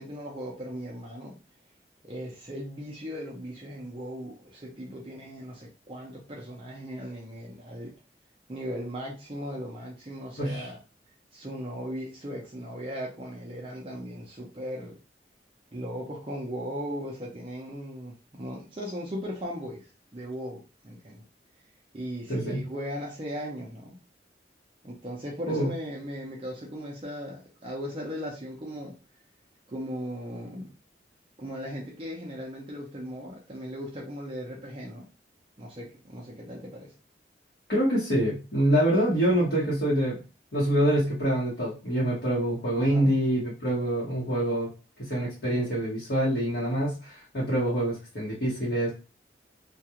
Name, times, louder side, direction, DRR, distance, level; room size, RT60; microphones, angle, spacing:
voice 1, 0.0-1.4 2.0-7.9 8.5-10.8 11.3-15.0 15.7-21.2 21.9-24.0 24.8-28.9 29.7-30.7 31.4-35.1 35.6-36.9 42.8-43.1, equal, 30° right, -3 dB, 0.5 m, -37 dB
voice 2, 22.3-22.6 25.5-25.7 37.7-40.2 40.5-44.7 45.0-48.9, right 1 dB, 60° left, -8 dB, 1.1 m, -26 dB
2.4 x 2.3 x 2.8 m, 0.33 s
head